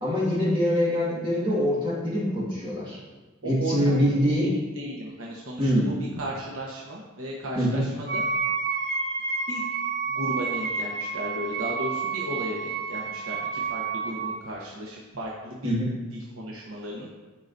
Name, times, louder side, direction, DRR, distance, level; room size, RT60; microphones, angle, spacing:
voice 1, 0.0-3.0 3.4-4.5 5.6-5.9 7.6-7.8 15.6-15.9, equal, 20° right, -6 dB, 1.8 m, -24 dB
voice 2, 3.4-3.9 4.2-8.2 9.5-9.6 10.0-15.7 16.1-17.1, equal, 80° right, -3 dB, 1.0 m, -35 dB
Wind instrument woodwind instrument, 8.1-14.4, right 5 dB, 50° right, 0.7 m, -29 dB
13.5 x 4.9 x 2.6 m, 1.2 s
head